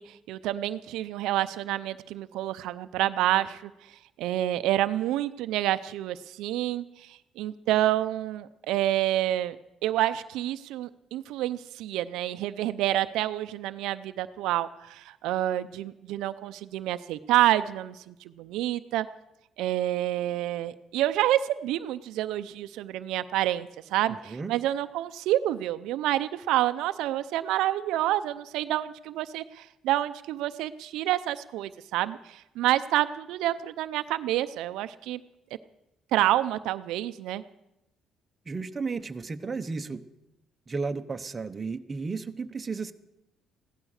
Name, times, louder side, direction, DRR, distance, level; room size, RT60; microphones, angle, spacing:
voice 1, 0.0-3.7 4.2-9.6 9.8-19.1 19.6-35.2 36.1-37.4, right 14 dB, 85° right, 11 dB, 0.5 m, -28 dB
voice 2, 24.1-24.5 38.5-40.0 40.7-42.9, right 4 dB, 25° right, 8 dB, 0.8 m, -33 dB
15.5 x 12.5 x 6.5 m, 0.89 s
cardioid pair, 125°, 0 cm